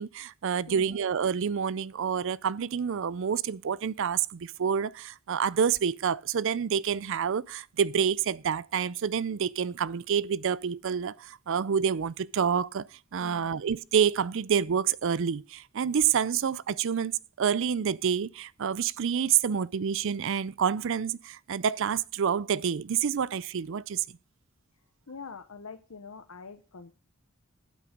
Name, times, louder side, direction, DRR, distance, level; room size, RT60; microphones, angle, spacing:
voice 1, 0.0-12.9 13.1-17.1 17.4-24.0, right 7 dB, 65° right, 0.5 m, -28 dB
voice 2, 13.2-13.6 25.1-26.9, left 4 dB, 80° left, 0.8 m, -44 dB
8.7 x 8.6 x 6.4 m
head